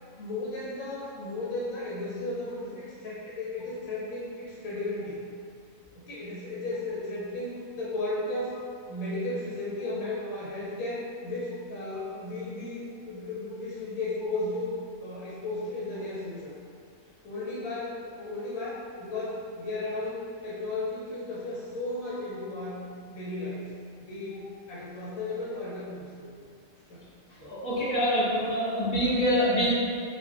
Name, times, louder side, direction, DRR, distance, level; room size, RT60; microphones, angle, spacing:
voice 1, 0.2-5.2 5.9-8.6 8.9-14.7 15.0-16.5 17.2-23.7 24.0-26.4 26.9-27.4, left 2 dB, 90° left, -7 dB, 1.0 m, -35 dB
voice 2, 27.4-29.7, equal, 20° left, -13 dB, 0.6 m, -25 dB
2.5 x 2.1 x 3.5 m, 2.2 s
omnidirectional pair, 1.4 m